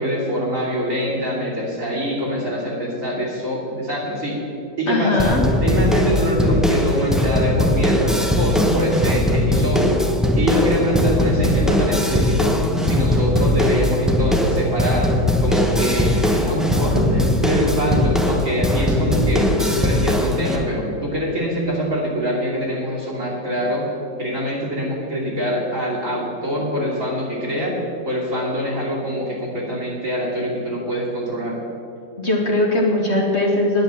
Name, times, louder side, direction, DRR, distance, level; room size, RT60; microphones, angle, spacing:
voice 1, 0.0-4.4 4.8-10.0 10.4-12.5 12.8-15.1 15.4-23.8 24.2-27.7 28.0-31.6, equal, 50° right, -5 dB, 3.1 m, -24 dB
voice 2, 4.9-5.4 32.2-33.8, left 1 dB, 45° left, -1 dB, 1.5 m, -19 dB
sound 1, 5.2-20.6, left 1 dB, ahead, 0.7 m, -19 dB
9.9 x 9.3 x 6.8 m, 2.9 s
omnidirectional pair, 1.8 m